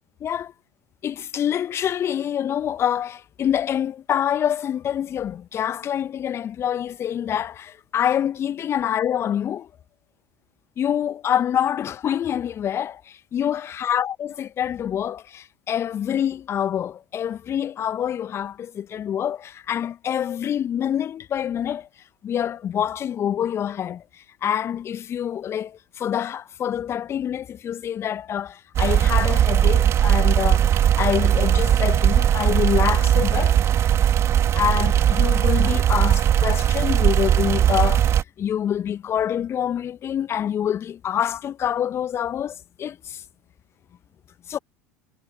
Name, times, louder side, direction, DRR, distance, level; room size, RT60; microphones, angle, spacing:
voice 1, 0.2-0.5 1.0-9.7 10.8-21.9 22.2-33.6 34.5-43.2 44.5-44.6, left 9 dB, 30° left, 1.3 m, -26 dB
sound 1, 28.8-38.2, right 10 dB, 35° right, 2.7 m, -19 dB
figure-of-eight pair, 75°, 8 cm